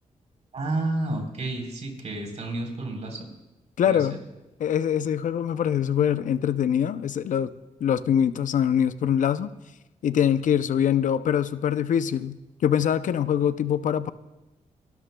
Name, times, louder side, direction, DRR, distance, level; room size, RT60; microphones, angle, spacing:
voice 1, 0.5-3.3 3.8-4.1, right 2 dB, 60° right, 2 dB, 3.8 m, -30 dB
voice 2, 3.8-4.2 4.6-7.5 7.8-9.5 10.0-14.1, left 9 dB, 75° left, 13 dB, 0.6 m, -23 dB
29.0 x 12.5 x 2.3 m, 0.99 s
cardioid pair, 70°, 13 cm